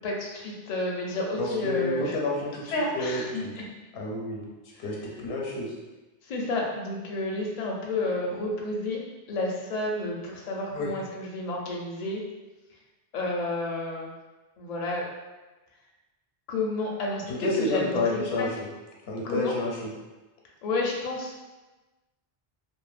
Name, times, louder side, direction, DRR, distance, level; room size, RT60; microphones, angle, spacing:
voice 1, 0.0-2.2 2.7-3.6 4.7-4.9 6.2-9.0 9.3-12.2 13.1-14.1 14.6-15.0 16.5-18.5 19.2-19.5 20.6-21.3, left 2 dB, 55° left, -2 dB, 0.5 m, -31 dB
voice 2, 1.4-2.6 2.9-3.6 3.9-4.4 4.8-5.7 10.7-10.9 17.3-18.7 19.1-19.9, left 2 dB, 85° left, -2 dB, 0.8 m, -29 dB
2.7 x 2.1 x 2.4 m, 1.1 s
omnidirectional pair, 1.1 m